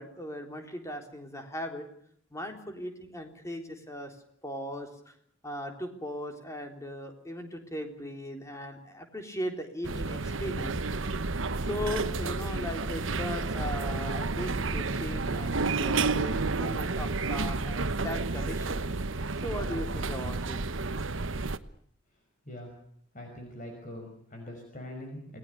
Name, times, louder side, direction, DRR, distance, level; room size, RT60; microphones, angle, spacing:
voice 1, 0.0-1.9 2.3-4.1 4.4-5.1 5.4-10.8 11.6-18.8 19.4-20.6, left 1 dB, 15° left, 4 dB, 3.8 m, -38 dB
sound 1, 9.8-21.6, right 3 dB, 70° right, 1.1 m, -31 dB
voice 2, 23.1-25.4, left 1 dB, 40° left, 3 dB, 5.8 m, -43 dB
28.5 x 19.5 x 6.7 m, 0.67 s
head